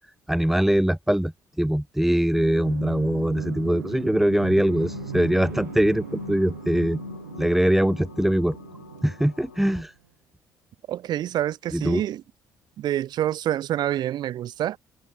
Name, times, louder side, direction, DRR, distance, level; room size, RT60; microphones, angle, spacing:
voice 1, 0.3-1.3 1.6-7.0 7.4-8.6 9.0-9.9 11.7-12.0, right 1 dB, 5° right, 0.4 m, -22 dB
sound 1, 2.3-9.9, right 12 dB, 75° right, 0.4 m, -40 dB
sound 2, 4.7-9.8, left 7 dB, 80° left, 1.7 m, -42 dB
voice 2, 10.9-12.2 12.8-14.8, right 12 dB, 50° right, 0.8 m, -27 dB
open air
figure-of-eight pair, 45°, 9 cm